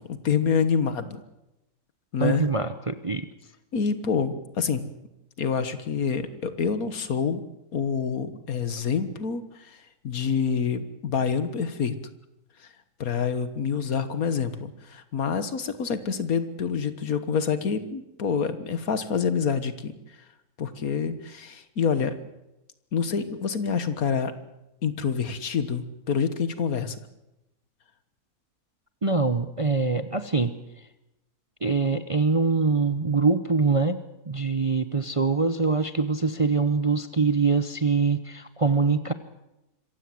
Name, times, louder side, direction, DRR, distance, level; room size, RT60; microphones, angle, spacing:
voice 1, 0.1-1.2 2.1-2.5 3.7-4.9 5.4-7.4 7.7-12.0 13.0-20.0 20.6-22.2 22.9-24.3 24.8-27.0, left 6 dB, 65° left, 12 dB, 1.8 m, -27 dB
voice 2, 2.2-3.3 29.0-30.5 31.6-34.0 34.3-39.1, right 4 dB, 30° right, 11 dB, 0.7 m, -24 dB
25.5 x 15.5 x 7.8 m, 0.92 s
omnidirectional pair, 1.6 m